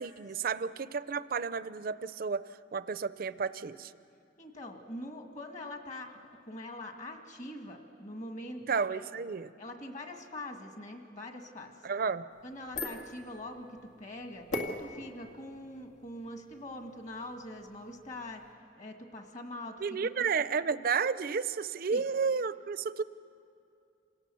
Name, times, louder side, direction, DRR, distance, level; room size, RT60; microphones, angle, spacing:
voice 1, 0.0-3.9 8.7-9.5 11.8-12.3 19.8-23.0, right 5 dB, 50° right, 15 dB, 0.5 m, -32 dB
voice 2, 4.4-6.1 6.4-9.3 9.6-11.7 12.4-13.7 14.0-14.5 14.8-18.4 18.8-19.8 20.3-20.4 21.9-22.1, left 1 dB, 40° left, 4 dB, 1.9 m, -43 dB
sound 1, 12.3-18.5, left 2 dB, 90° left, 2.2 m, -43 dB
27.5 x 17.5 x 7.0 m, 2.6 s
head